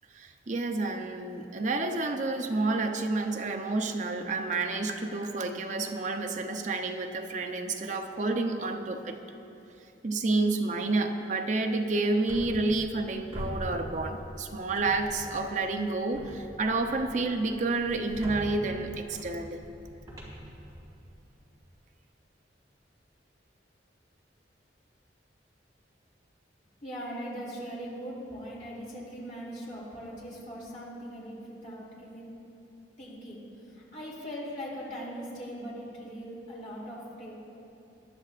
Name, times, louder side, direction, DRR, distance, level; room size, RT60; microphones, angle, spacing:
voice 1, 0.1-9.2 10.0-19.6, right 3 dB, 40° right, 5 dB, 0.7 m, -29 dB
sound 1, 12.3-13.1 13.3-14.4 14.7-15.6 16.1-21.2, equal, 20° right, 2.1 m, -42 dB
voice 2, 26.8-32.2 33.0-33.4 33.7-37.3, equal, 45° left, -5 dB, 2.7 m, -40 dB
19.0 x 11.5 x 2.5 m, 2.7 s
head